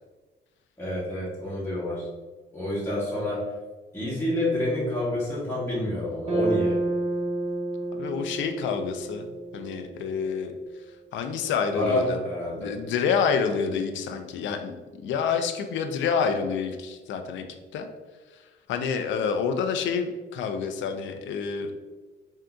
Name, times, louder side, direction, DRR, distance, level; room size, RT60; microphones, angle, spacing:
voice 1, 0.8-2.1 2.5-3.5 3.9-6.8 11.7-12.7, left 1 dB, 10° left, -8 dB, 1.0 m, -28 dB
sound 1, 6.2-10.6, right 2 dB, 30° right, 0.8 m, -30 dB
voice 2, 7.9-9.3 9.5-10.5 11.1-12.2 12.6-14.8 15.0-17.4 17.7-17.9 18.7-21.7, left 6 dB, 70° left, 6 dB, 0.4 m, -28 dB
3.6 x 2.7 x 2.3 m, 1.3 s
cardioid pair, 90°, 20 cm